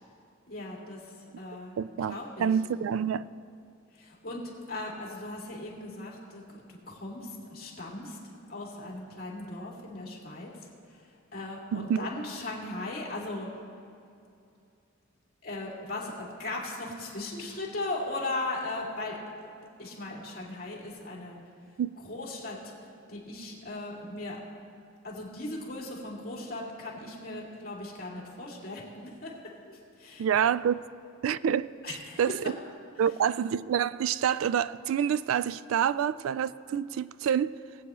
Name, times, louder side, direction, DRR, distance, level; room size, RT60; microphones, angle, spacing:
voice 1, 0.5-1.8 2.1-2.5 3.9-8.2 8.5-11.0 11.3-13.5 15.4-19.2 19.8-21.4 22.0-22.7 23.1-24.4 25.0-29.3 29.7-30.3 31.8-32.5, left 2 dB, 50° left, 2.6 m, -38 dB
voice 2, 1.8-3.2 11.7-12.1 21.8-21.9 30.2-30.9 31.2-31.7 32.2-32.3 33.0-37.5, right 8 dB, 80° right, 0.3 m, -27 dB
20.5 x 8.6 x 3.0 m
head